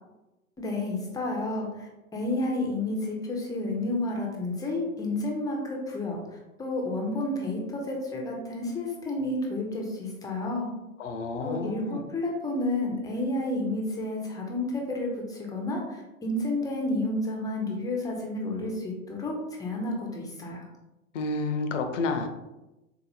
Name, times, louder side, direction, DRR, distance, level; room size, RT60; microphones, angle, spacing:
voice 1, 0.6-10.7 11.4-20.7, left 2 dB, 10° left, 0 dB, 0.5 m, -31 dB
voice 2, 11.0-12.0 21.1-22.3, left 3 dB, 60° left, 6 dB, 0.6 m, -30 dB
3.9 x 2.8 x 2.7 m, 0.99 s
figure-of-eight pair, 95°, 42 cm